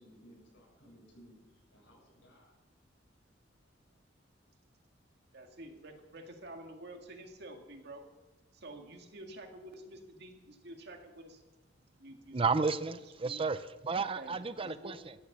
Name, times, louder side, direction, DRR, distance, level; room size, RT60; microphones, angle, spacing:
voice 1, 0.0-1.4 1.7-2.5, equal, 75° left, -2 dB, 7.1 m, -59 dB
voice 2, 5.3-8.0 8.5-11.4 12.0-12.4 13.0-13.4 14.0-15.0, right 1 dB, 60° right, 3 dB, 2.1 m, -49 dB
voice 3, 12.3-15.1, right 4 dB, 30° right, 13 dB, 0.5 m, -32 dB
14.0 x 10.5 x 7.3 m, 1.1 s
head